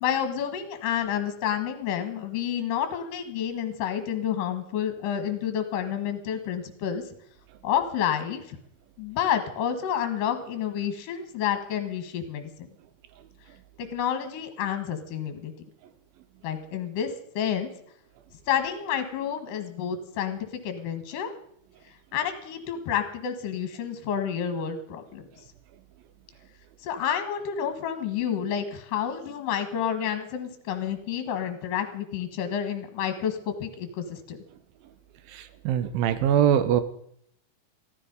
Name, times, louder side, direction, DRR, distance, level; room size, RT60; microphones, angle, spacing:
voice 1, 0.0-7.0 7.6-8.6 9.0-12.7 13.8-15.5 16.4-17.7 18.5-21.3 22.1-25.3 26.8-34.4, left 9 dB, 65° left, 8 dB, 3.0 m, -29 dB
voice 2, 35.7-36.8, right 9 dB, 80° right, 13 dB, 2.5 m, -21 dB
15.0 x 13.5 x 5.3 m, 0.70 s
omnidirectional pair, 4.4 m